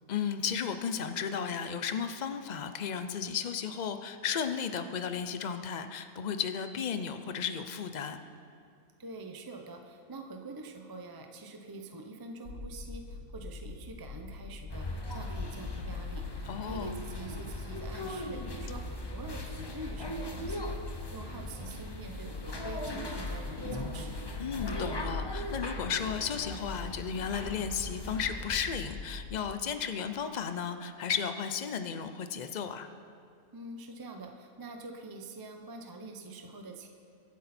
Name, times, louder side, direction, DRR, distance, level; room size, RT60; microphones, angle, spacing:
voice 1, 0.1-8.2 16.5-17.0 24.4-32.9, left 7 dB, 60° left, 9 dB, 0.4 m, -34 dB
voice 2, 9.0-24.2 33.5-36.9, right 2 dB, 20° right, 4 dB, 0.6 m, -45 dB
sound 1, 12.4-29.4, left 3 dB, 75° left, 1.7 m, -42 dB
sound 2, 14.7-28.7, left 1 dB, 20° left, 0.8 m, -40 dB
24.0 x 8.2 x 4.3 m, 2.3 s
omnidirectional pair, 1.6 m